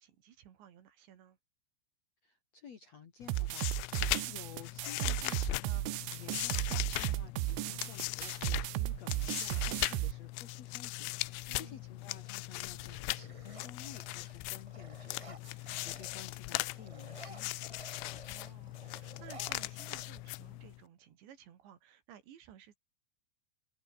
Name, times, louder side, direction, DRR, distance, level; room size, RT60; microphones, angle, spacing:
voice 1, 0.0-1.4 7.6-8.2 11.5-11.8 18.3-22.8, right 10 dB, 65° right, 4.6 m, -56 dB
voice 2, 2.2-17.8, left 6 dB, 50° left, 2.1 m, -53 dB
sound 1, 3.2-20.8, left 22 dB, 85° left, 3.2 m, -39 dB
sound 2, 3.3-10.1, right 18 dB, 80° right, 3.4 m, -35 dB
sound 3, 4.8-5.7 7.4-7.5 7.9-8.4 8.9-10.4 11.1-11.5 11.8-16.4 16.6-20.6, right 2 dB, 50° right, 0.4 m, -55 dB
omnidirectional pair, 5.7 m